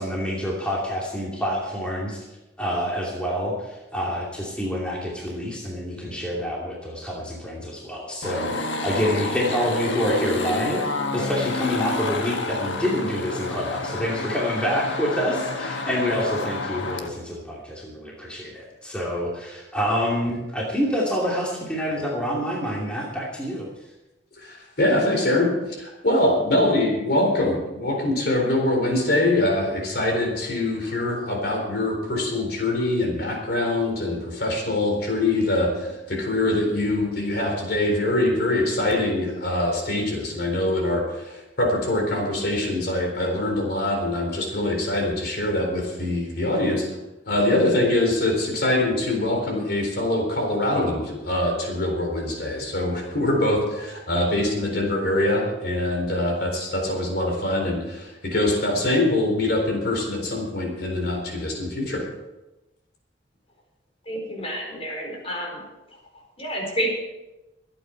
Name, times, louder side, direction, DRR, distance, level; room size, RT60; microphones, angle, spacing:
voice 1, 0.0-2.2 2.6-23.7, equal, 5° left, -4 dB, 2.6 m, -27 dB
sound 1, 8.2-17.1, left 2 dB, 90° left, 1.5 m, -29 dB
voice 2, 24.4-47.0 47.3-62.0, left 1 dB, 60° left, 1 dB, 4.1 m, -24 dB
voice 3, 64.0-65.6 65.9-66.0 66.4-66.9, equal, 30° left, 0 dB, 4.4 m, -29 dB
24.0 x 8.7 x 4.6 m, 1.0 s
head